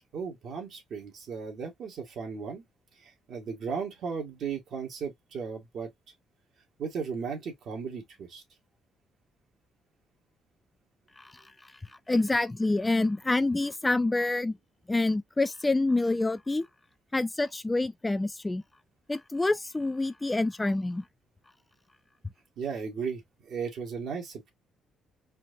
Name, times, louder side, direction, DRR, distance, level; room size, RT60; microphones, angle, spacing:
voice 1, 0.1-2.6 3.0-5.9 6.8-8.4 22.6-24.5, right 6 dB, 70° right, 1.7 m, -36 dB
voice 2, 12.1-14.6 14.9-16.7 17.1-18.6 19.1-21.0, left 2 dB, 15° left, 0.4 m, -27 dB
4.4 x 2.8 x 2.6 m
cardioid pair, 90°, 0 cm